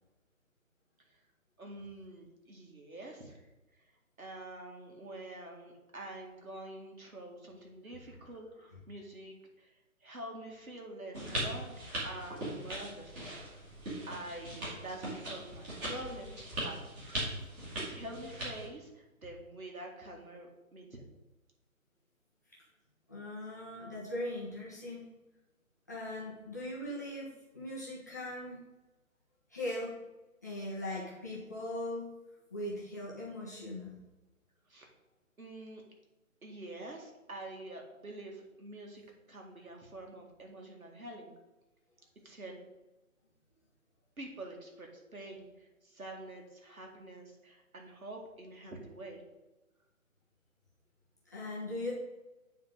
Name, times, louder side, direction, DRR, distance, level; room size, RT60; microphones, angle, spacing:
voice 1, 1.6-3.5 4.2-11.8 12.0-13.1 14.1-16.8 17.9-21.0 34.7-34.9 35.4-35.8 36.4-39.0 39.3-41.3 42.2-42.6 44.2-49.2, right 1 dB, 75° right, 1 dB, 2.2 m, -46 dB
sound 1, 11.1-18.7, right 1 dB, 15° right, 1.8 m, -40 dB
voice 2, 23.1-25.1 25.9-28.6 29.5-30.0 30.4-32.1 32.5-33.9 51.3-51.9, left 1 dB, 15° left, -7 dB, 0.6 m, -39 dB
9.3 x 3.7 x 5.0 m, 1.1 s
figure-of-eight pair, 145°, 42 cm